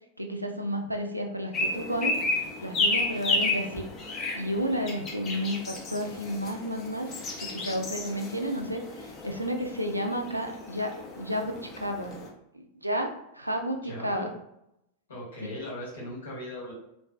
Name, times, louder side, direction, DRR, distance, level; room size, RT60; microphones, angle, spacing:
voice 1, 0.2-2.2 2.6-3.9 4.3-7.1 7.4-12.2 12.5-14.3, equal, 85° right, 4 dB, 0.3 m, -32 dB
sound 1, 1.5-12.3, left 2 dB, 30° left, 0.5 m, -32 dB
voice 2, 13.8-14.3 15.1-16.7, left 1 dB, 70° left, -5 dB, 1.2 m, -38 dB
2.5 x 2.3 x 2.3 m, 0.81 s
figure-of-eight pair, 90°, 0 cm